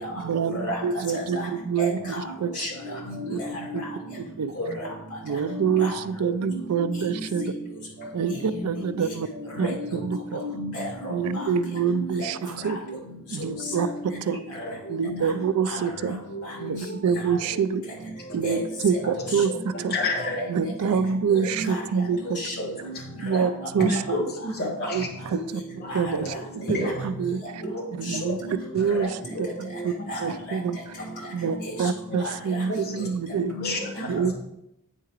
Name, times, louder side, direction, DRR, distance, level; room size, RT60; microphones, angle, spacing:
voice 1, 0.2-2.5 3.3-3.4 3.7-3.8 4.4-4.6 5.2-7.5 8.1-9.3 9.6-10.4 11.1-12.8 13.3-14.4 14.9-16.2 16.6-17.8 18.3-19.9 20.5-22.4 23.2-24.2 24.9-25.6 25.9-27.6 27.9-28.4 28.7-29.9 30.2-30.9 31.3-33.5 34.1-34.3, right 6 dB, 90° right, 14 dB, 0.4 m, -26 dB
voice 2, 1.8-2.3 2.6-2.7 3.0-3.8 4.6-4.9 5.5-5.9 6.4-6.9 7.3-7.5 9.6-11.5 11.8-12.0 12.6-12.7 13.6-14.2 15.0-15.2 15.7-16.2 16.6-16.8 18.4-18.6 20.3-20.4 21.7-21.8 22.4-22.5 22.8-22.9 23.3-23.4 24.8-24.9 25.4-25.5 25.9-26.0 27.7-28.5 29.0-29.1 30.1-30.3 33.5-33.8, left 1 dB, 75° left, -3 dB, 2.4 m, -33 dB
voice 3, 19.9-20.3 22.6-22.7 23.8-25.1 25.8-26.0 26.6-27.0 27.6-27.7 28.7-28.8 29.3-29.5 30.1-30.2 31.0-31.3 32.7-33.1 33.6-34.2, left 2 dB, 45° left, 0 dB, 1.1 m, -30 dB
8.9 x 4.7 x 3.0 m, 0.86 s
head